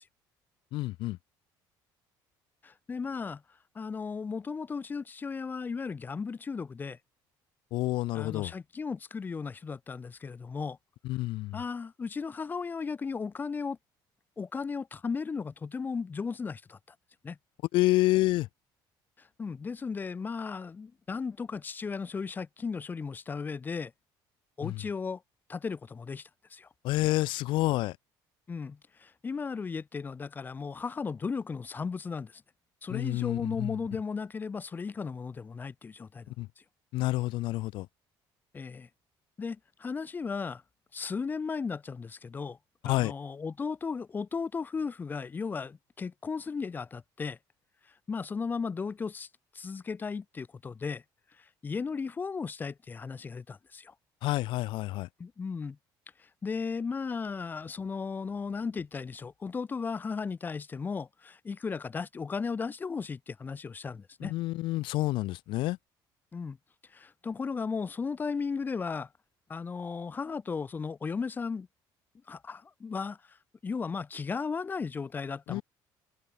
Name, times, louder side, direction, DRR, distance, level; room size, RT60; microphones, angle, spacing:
voice 1, 0.7-1.2 7.7-8.5 11.0-11.6 17.7-18.5 24.6-24.8 26.8-27.9 32.9-33.8 36.4-36.5 36.9-37.9 42.8-43.1 54.2-55.1 64.2-65.8 75.5-75.6, left 18 dB, 75° left, 6.8 m, -28 dB
voice 2, 2.6-3.4 3.7-7.0 8.1-10.8 11.5-13.8 14.4-16.8 17.2-17.4 19.4-23.9 24.6-25.2 25.5-26.7 28.5-32.4 32.8-36.3 38.5-38.9 39.4-40.6 40.9-42.6 42.8-47.4 48.1-49.3 49.5-51.0 51.6-53.9 55.2-55.8 56.4-64.3 66.3-66.6 66.9-69.1 69.5-71.7 72.3-73.4 73.6-75.6, left 5 dB, 20° left, 6.4 m, -35 dB
open air
cardioid pair, 155°, 9 cm